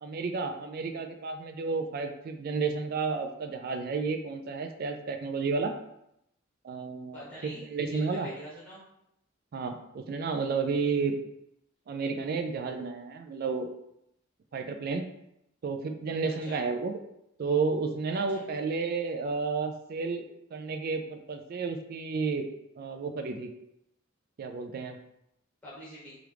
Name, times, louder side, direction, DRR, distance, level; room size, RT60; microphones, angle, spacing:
voice 1, 0.0-5.7 6.6-8.3 9.5-11.2 11.9-13.7 14.5-15.0 15.6-16.9 17.4-20.3 20.5-22.5 22.8-23.5 24.4-25.0, right 4 dB, 50° right, 6 dB, 0.3 m, -31 dB
voice 2, 7.1-8.8 16.4-16.6 18.1-18.4 25.6-26.2, equal, 10° left, -6 dB, 1.2 m, -45 dB
3.0 x 2.4 x 3.3 m, 0.81 s
head